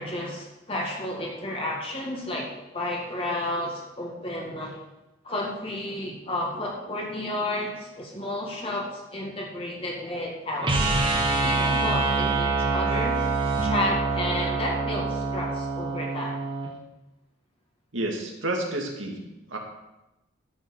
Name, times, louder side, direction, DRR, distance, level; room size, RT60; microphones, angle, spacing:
voice 1, 0.0-4.8 5.2-13.3 13.6-16.4, left 1 dB, 30° left, -2 dB, 2.1 m, -32 dB
sound 1, 10.6-16.7, right 3 dB, 25° right, 1.7 m, -25 dB
voice 2, 17.9-19.6, right 1 dB, 75° right, 1 dB, 2.3 m, -30 dB
13.0 x 6.0 x 7.1 m, 0.98 s
head